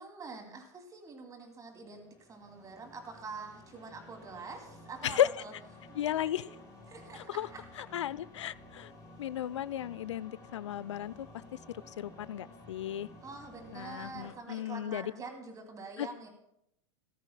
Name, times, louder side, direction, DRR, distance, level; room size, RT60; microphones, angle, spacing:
voice 1, 0.0-5.9 6.3-6.4 6.9-7.6 13.2-16.3, right 4 dB, 20° right, 3 dB, 2.7 m, -46 dB
sound 1, 1.7-14.4, left 1 dB, 20° left, 5.6 m, -54 dB
voice 2, 6.0-6.4 7.3-7.5 7.8-8.9 9.2-11.3 12.0-13.1 13.7-15.1 16.0-16.1, left 11 dB, 65° left, 19 dB, 0.4 m, -34 dB
18.5 x 13.5 x 2.2 m, 0.78 s
figure-of-eight pair, 85°, 16 cm